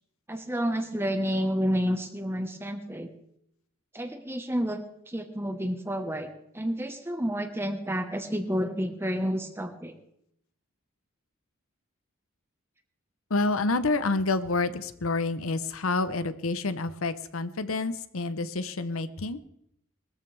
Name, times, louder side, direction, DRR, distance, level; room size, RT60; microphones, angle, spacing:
voice 1, 0.3-3.1 3.9-6.3 6.5-9.9, equal, 10° right, 6 dB, 1.2 m, -30 dB
voice 2, 13.3-19.4, left 3 dB, 80° left, 12 dB, 0.8 m, -28 dB
21.0 x 14.0 x 3.4 m, 0.75 s
head